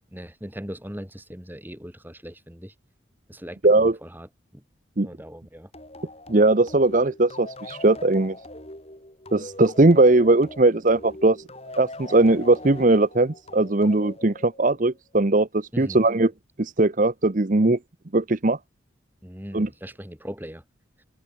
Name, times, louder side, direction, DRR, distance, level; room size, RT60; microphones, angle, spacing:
voice 1, 0.1-2.7 3.3-4.3 4.5-4.6 5.0-5.7 15.7-16.1 19.2-20.6, equal, 10° right, 5.1 m, -39 dB
voice 2, 3.6-4.0 5.0-5.1 6.3-8.4 9.3-11.4 11.8-16.3 16.6-17.8 18.1-18.6 19.5-19.7, right 2 dB, 40° right, 0.9 m, -19 dB
sound 1, 5.7-15.0, left 1 dB, 30° left, 7.4 m, -42 dB
head